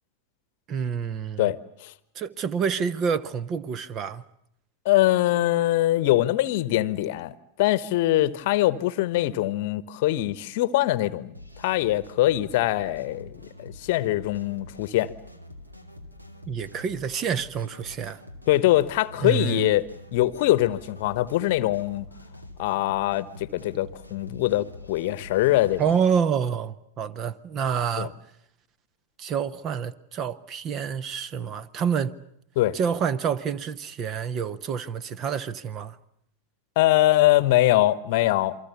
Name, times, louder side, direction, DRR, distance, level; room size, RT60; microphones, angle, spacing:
voice 1, 0.7-1.5 2.1-4.2 16.5-18.2 19.2-19.7 25.8-28.1 29.2-32.2 32.7-36.0, right 7 dB, 30° right, 1.0 m, -28 dB
voice 2, 4.8-15.1 18.5-19.8 20.1-22.0 22.6-25.8 28.0-28.1 32.6-32.7 36.8-38.6, left 15 dB, 50° left, 1.0 m, -23 dB
sound 1, 11.3-26.1, left 1 dB, 85° right, 2.5 m, -46 dB
28.5 x 23.5 x 6.8 m
figure-of-eight pair, 90°, 0 cm